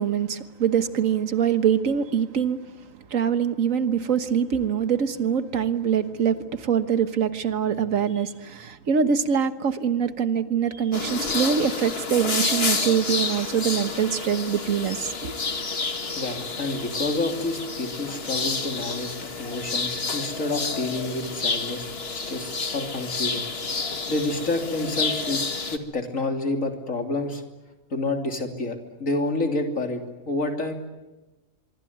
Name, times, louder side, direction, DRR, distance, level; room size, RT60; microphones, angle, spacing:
voice 1, 0.0-2.6 3.1-15.3, right 7 dB, 80° right, 1.7 m, -24 dB
sound 1, 10.9-25.8, left 4 dB, 50° left, 2.0 m, -29 dB
voice 2, 16.1-23.5 24.1-25.4 25.7-27.4 27.9-30.7, left 2 dB, 80° left, 3.4 m, -29 dB
25.0 x 24.0 x 9.4 m
omnidirectional pair, 1.4 m